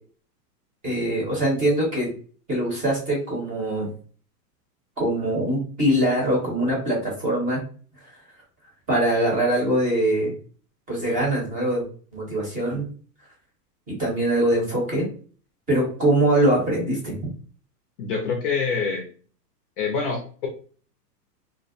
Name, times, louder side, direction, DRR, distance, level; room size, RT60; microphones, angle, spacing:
voice 1, 0.8-2.1 2.5-3.9 5.0-7.6 8.9-10.3 10.9-11.8 12.1-12.9 13.9-15.1 15.7-17.1, right 1 dB, 15° right, -3 dB, 0.8 m, -22 dB
voice 2, 18.0-19.0 19.8-20.5, left 5 dB, 35° left, 1 dB, 0.5 m, -26 dB
2.4 x 2.1 x 2.6 m, 0.41 s
hypercardioid pair, 150°, 49 cm